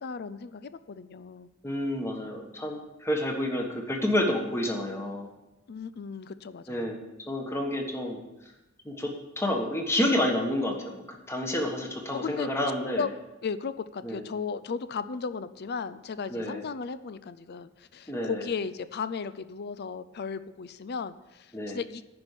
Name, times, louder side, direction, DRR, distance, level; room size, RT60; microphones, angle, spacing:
voice 1, 0.0-1.5 5.7-7.0 12.1-12.5 13.0-13.1 13.4-22.1, left 5 dB, 50° left, 14 dB, 0.5 m, -35 dB
voice 2, 1.6-5.3 6.7-7.0 7.3-8.2 8.8-13.0 14.0-14.2 16.3-16.6 18.1-18.4 21.5-21.8, left 1 dB, 15° left, 2 dB, 1.4 m, -29 dB
10.5 x 5.3 x 8.2 m, 1.0 s
head